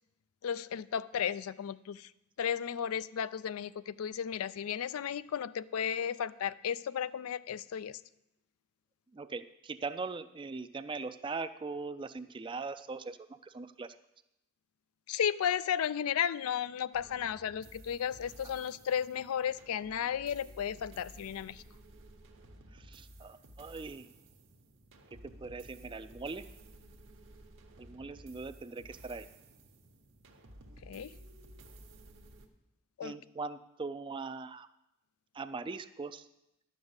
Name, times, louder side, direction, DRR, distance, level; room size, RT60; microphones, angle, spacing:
voice 1, 0.4-2.1 2.4-8.0 15.1-21.6 30.9-31.2 33.0-33.2, left 8 dB, 85° left, 17 dB, 0.4 m, -34 dB
voice 2, 9.1-13.2 13.4-13.9 22.7-24.1 25.1-26.4 27.8-29.3 33.0-34.7 35.3-36.3, right 4 dB, 25° right, 12 dB, 0.3 m, -41 dB
sound 1, 16.9-32.5, right 1 dB, 60° right, 1.1 m, -54 dB
11.0 x 5.4 x 8.0 m, 0.89 s
head